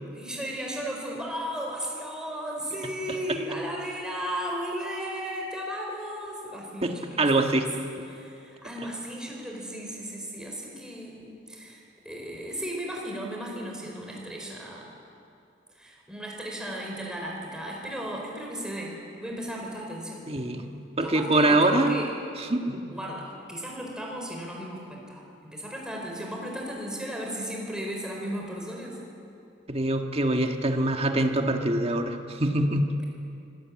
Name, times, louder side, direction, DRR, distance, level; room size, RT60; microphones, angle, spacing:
voice 1, 0.1-14.9 15.7-20.3 21.0-22.1 22.9-29.0, equal, 5° right, -1 dB, 4.6 m, -35 dB
voice 2, 7.2-7.7 20.3-20.6 21.0-22.0 22.4-22.8 29.7-32.9, right 2 dB, 30° right, 4 dB, 1.6 m, -24 dB
25.0 x 18.0 x 8.7 m, 2.6 s
head